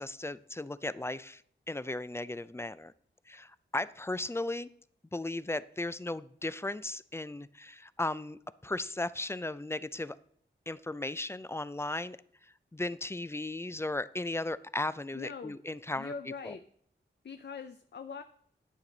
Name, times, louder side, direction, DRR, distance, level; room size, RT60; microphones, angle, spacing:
voice 1, 0.0-1.4 1.7-2.9 3.3-4.7 5.1-10.2 10.7-12.2 12.4-16.1 16.4-16.6, left 2 dB, 15° left, 16 dB, 0.4 m, -36 dB
voice 2, 15.1-15.6 16.0-16.6 17.2-18.2, left 5 dB, 60° left, 8 dB, 0.6 m, -42 dB
10.0 x 8.3 x 3.9 m, 0.65 s
wide cardioid pair, 65°, 20 cm